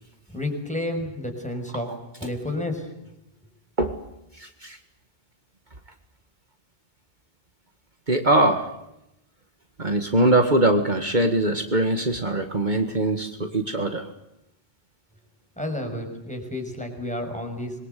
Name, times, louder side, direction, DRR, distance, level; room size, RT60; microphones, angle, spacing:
voice 1, 0.3-1.9 2.2-2.9 15.6-17.8, left 1 dB, 5° left, 3 dB, 6.2 m, -30 dB
voice 2, 4.4-4.8 8.1-8.7 9.8-14.1, right 2 dB, 50° right, 6 dB, 2.0 m, -22 dB
27.0 x 22.0 x 8.4 m, 0.86 s
omnidirectional pair, 1.0 m